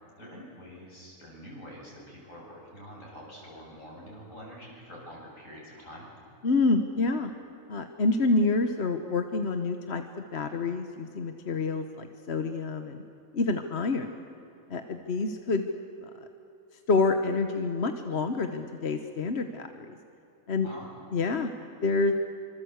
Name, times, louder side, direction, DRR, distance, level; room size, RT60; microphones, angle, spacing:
voice 1, 0.2-6.1 20.6-20.9, equal, 65° left, -3 dB, 8.2 m, -46 dB
voice 2, 6.4-7.3 7.7-13.0 13.3-14.1 14.7-15.7 16.9-19.9 20.5-20.7 21.1-21.5 21.8-22.1, left 3 dB, 50° left, 7 dB, 1.3 m, -27 dB
25.5 x 25.0 x 8.1 m, 2.8 s
omnidirectional pair, 1.4 m